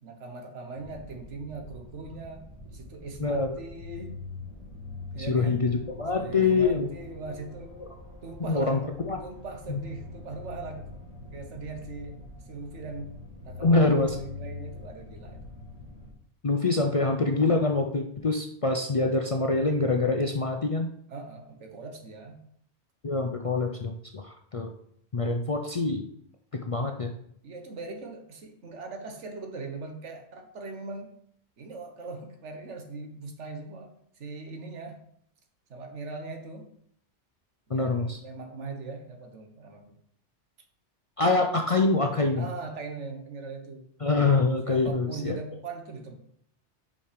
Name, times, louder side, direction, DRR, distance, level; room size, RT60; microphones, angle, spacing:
voice 1, 0.0-2.4 2.7-4.2 5.1-5.6 6.1-7.7 8.2-8.9 9.2-10.9 11.3-12.2 12.5-13.2 13.4-15.5 21.1-22.4 27.4-31.1 31.6-35.0 35.7-36.7 37.7-39.9 42.3-43.9 44.6-46.1, right 3 dB, 80° right, 4 dB, 1.5 m, -40 dB
sound 1, 0.7-16.1, left 2 dB, 20° right, 1.7 m, -44 dB
voice 2, 3.2-3.6 5.3-5.7 6.0-6.9 8.5-8.8 9.0-9.2 9.7-9.8 13.6-14.2 16.4-20.9 23.0-24.7 25.1-26.1 26.7-27.1 37.7-38.2 41.2-42.4 44.0-45.4, left 3 dB, 45° left, 3 dB, 0.5 m, -25 dB
5.5 x 5.5 x 5.0 m, 0.67 s
omnidirectional pair, 1.2 m